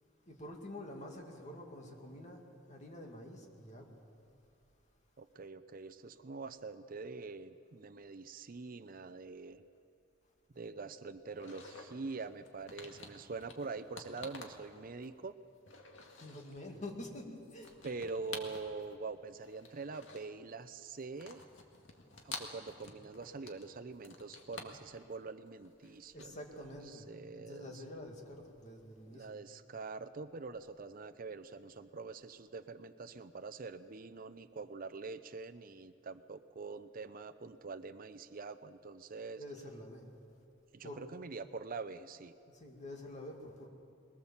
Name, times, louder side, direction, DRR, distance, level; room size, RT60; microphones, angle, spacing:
voice 1, 0.3-2.4 2.7-3.9 16.0-17.7 21.0-21.1 26.1-29.3 39.4-40.1 40.8-41.0 42.5-43.7, left 1 dB, 40° left, 1 dB, 2.4 m, -48 dB
voice 2, 5.2-9.6 10.5-15.3 17.8-21.5 22.2-27.8 29.1-39.4 40.7-42.3, right 4 dB, 50° right, 11 dB, 0.6 m, -45 dB
sound 1, 11.3-15.3 15.6-16.7 16.9-19.0 19.3-20.5 20.8-26.2, left 4 dB, 80° left, 1.9 m, -51 dB
21.5 x 19.0 x 7.3 m, 2.5 s
head